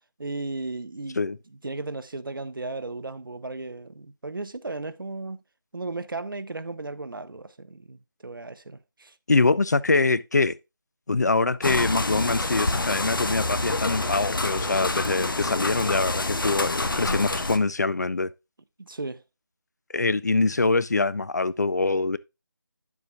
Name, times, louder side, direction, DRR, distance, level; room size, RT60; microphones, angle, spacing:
voice 1, 0.2-1.2 1.6-5.4 5.7-9.2 18.8-19.2, right 3 dB, 85° right, 1.0 m, -35 dB
voice 2, 9.3-10.6 11.1-18.3 19.9-22.2, left 3 dB, 55° left, 0.6 m, -24 dB
sound 1, 11.6-17.6, left 2 dB, 75° left, 1.3 m, -27 dB
9.6 x 7.2 x 2.3 m
figure-of-eight pair, 175°, 11 cm